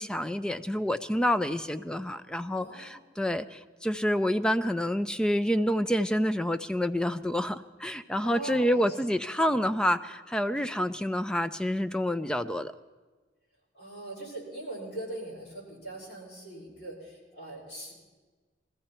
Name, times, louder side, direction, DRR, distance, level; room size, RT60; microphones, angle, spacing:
voice 1, 0.0-12.7, equal, 5° left, 11 dB, 0.4 m, -28 dB
voice 2, 2.5-2.9 8.2-8.9 13.7-17.9, right 2 dB, 75° left, -4 dB, 6.1 m, -41 dB
22.0 x 14.5 x 4.4 m, 1.3 s
head